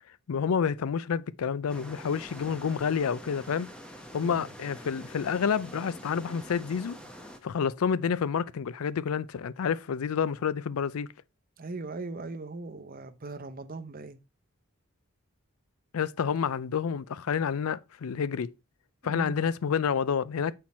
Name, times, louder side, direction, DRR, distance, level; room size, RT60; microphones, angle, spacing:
voice 1, 0.3-3.7 4.1-7.0 7.4-11.1 15.9-18.5 19.0-20.5, left 6 dB, 85° left, 0.4 m, -29 dB
sound 1, 1.7-7.4, equal, 5° left, 0.8 m, -46 dB
voice 2, 4.2-4.5 11.6-14.2 19.0-19.4, right 2 dB, 40° right, 0.7 m, -39 dB
7.4 x 4.5 x 4.2 m
head